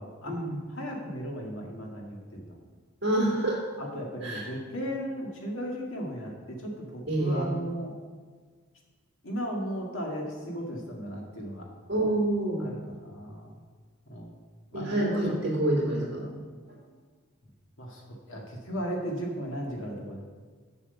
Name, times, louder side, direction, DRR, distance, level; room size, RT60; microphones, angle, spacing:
voice 1, 0.0-0.3 0.7-2.6 3.8-7.9 9.2-11.7 12.6-13.5 14.1-14.3 14.7-15.4 17.8-20.2, equal, 65° left, -1 dB, 1.9 m, -36 dB
voice 2, 3.0-3.6 4.2-4.4 7.1-7.5 11.9-12.7 14.7-16.3 16.7-16.8, right 1 dB, 55° right, -3 dB, 2.8 m, -27 dB
7.3 x 6.3 x 7.0 m, 1.5 s
head